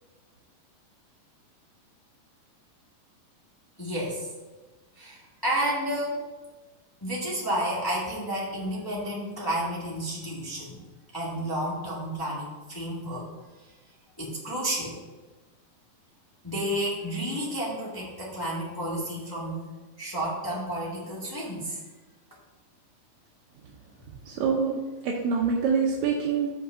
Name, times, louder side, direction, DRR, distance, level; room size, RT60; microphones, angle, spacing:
voice 1, 3.8-4.3 5.0-6.2 7.0-10.8 11.1-13.3 14.2-15.0 16.4-19.6 20.0-21.8, right 1 dB, 15° left, -6 dB, 0.7 m, -31 dB
voice 2, 24.3-26.5, right 5 dB, 70° right, -2 dB, 1.9 m, -26 dB
6.4 x 5.8 x 5.8 m, 1.3 s
omnidirectional pair, 3.9 m